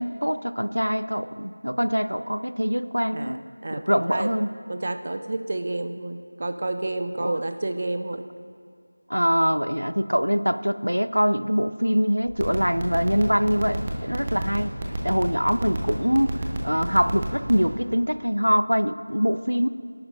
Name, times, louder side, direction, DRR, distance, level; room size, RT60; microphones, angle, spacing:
voice 1, 0.0-3.4 3.7-4.5 7.2-7.4 9.1-14.7 15.0-19.7, equal, 85° right, 13 dB, 0.5 m, -24 dB
voice 2, 3.6-4.3 4.7-8.3, right 2 dB, 35° right, 8 dB, 0.4 m, -30 dB
sound 1, 12.3-17.6, right 3 dB, 20° right, 1.0 m, -29 dB
25.0 x 11.5 x 2.6 m, 2.2 s
figure-of-eight pair, 170°, 0 cm